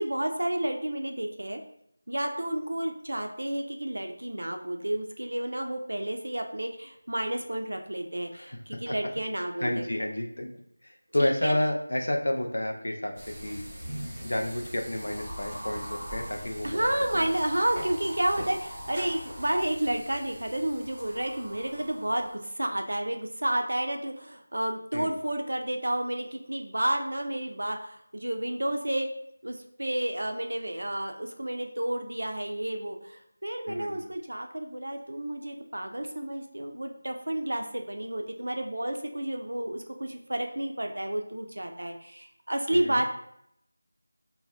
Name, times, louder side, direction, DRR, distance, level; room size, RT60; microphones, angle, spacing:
voice 1, 0.0-1.6 2.1-9.9 11.2-11.5 16.6-29.1 29.4-43.1, right 1 dB, 85° right, 4 dB, 0.4 m, -31 dB
voice 2, 9.6-10.5 10.8-13.6 14.2-16.9 24.9-25.1 33.7-34.0 42.7-43.0, left 1 dB, 70° left, 2 dB, 0.4 m, -30 dB
sound 1, 13.1-22.5, equal, 10° right, 0.7 m, -41 dB
2.6 x 2.1 x 3.2 m, 0.73 s
figure-of-eight pair, 180°, 0 cm